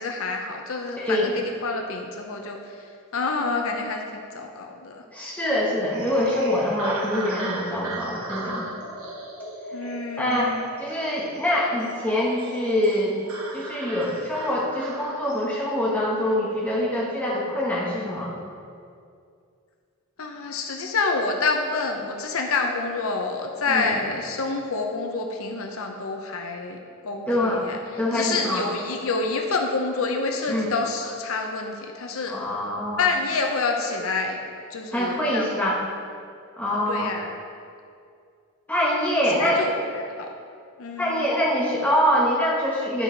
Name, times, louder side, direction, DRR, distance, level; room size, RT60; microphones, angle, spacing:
voice 1, 0.0-2.6 3.1-5.0 9.7-10.7 20.2-26.8 27.0-27.8 28.1-32.3 33.0-34.4 34.7-35.5 36.9-37.4 39.4-40.3 40.8-41.2, left 4 dB, 70° left, 2 dB, 0.7 m, -28 dB
voice 2, 1.0-1.3 5.1-8.6 10.2-13.2 13.5-18.3 23.7-24.0 27.3-27.6 28.0-28.7 30.5-30.7 32.3-33.1 34.9-35.8 36.6-37.1 38.7-39.6 41.0-43.0, left 1 dB, 5° left, -5 dB, 1.2 m, -24 dB
sound 1, 5.9-15.6, right 2 dB, 70° right, 1.2 m, -36 dB
11.0 x 4.9 x 4.5 m, 2.3 s
head